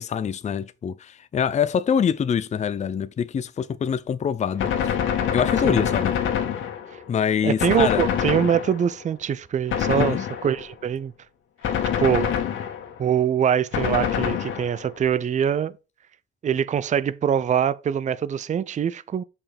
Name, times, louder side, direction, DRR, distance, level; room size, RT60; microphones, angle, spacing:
voice 1, 0.0-4.9 5.3-6.2 7.1-8.1 10.0-10.2, left 7 dB, 35° left, 0.5 m, -25 dB
Gunshot gunfire, 4.6-7.1 7.6-9.0 9.7-10.7 11.6-13.0 13.7-15.0, left 8 dB, 80° left, 1.5 m, -25 dB
voice 2, 7.4-11.1 12.0-12.3 13.0-15.7 16.4-19.2, right 8 dB, 40° right, 0.5 m, -23 dB
6.8 x 5.6 x 3.4 m
cardioid pair, 90°, 20 cm